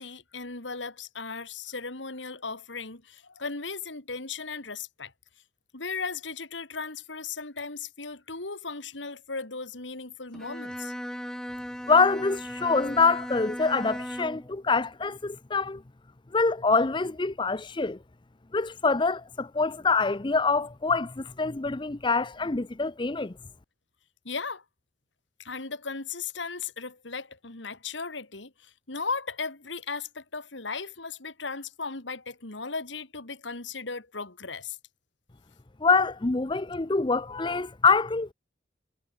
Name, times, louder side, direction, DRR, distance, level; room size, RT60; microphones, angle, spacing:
voice 1, 0.0-5.1 5.7-10.9 24.2-24.6 25.4-34.8, left 4 dB, 80° left, 2.8 m, -36 dB
Bowed string instrument, 10.3-14.5, equal, 5° left, 6.1 m, -37 dB
voice 2, 11.9-15.8 16.3-18.0 18.5-23.3 35.8-38.3, left 4 dB, 25° left, 0.6 m, -25 dB
head